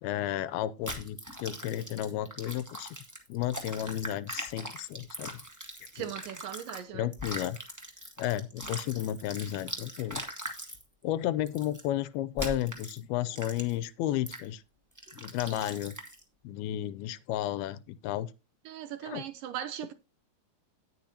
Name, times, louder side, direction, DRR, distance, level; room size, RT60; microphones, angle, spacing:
voice 1, 0.0-2.9 3.3-5.4 6.0-6.1 6.9-7.6 8.2-10.2 11.0-14.6 15.2-15.9 16.4-18.3 19.0-19.2, left 12 dB, 80° left, 2.4 m, -33 dB
sound 1, 0.8-6.8 7.1-10.8 11.5-11.8 12.4-13.0 13.3-13.8 14.3-14.4 15.0-16.2, equal, 15° right, 0.6 m, -41 dB
voice 2, 5.9-7.1 18.7-19.9, right 11 dB, 75° right, 2.2 m, -38 dB
18.0 x 6.3 x 2.8 m
omnidirectional pair, 4.4 m